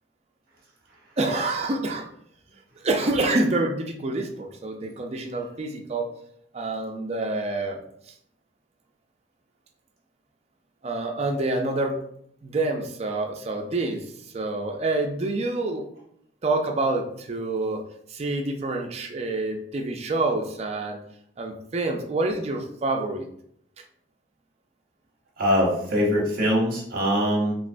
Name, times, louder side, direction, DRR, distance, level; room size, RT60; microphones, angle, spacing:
voice 1, 1.2-2.1 2.8-6.1 6.5-7.8 10.8-12.0 12.4-14.1 14.3-15.9 16.4-17.8 18.1-21.0 21.4-23.3, right 2 dB, 35° right, 3 dB, 0.4 m, -27 dB
voice 2, 25.4-27.6, equal, 50° right, -3 dB, 0.8 m, -22 dB
3.1 x 3.0 x 2.5 m, 0.68 s
head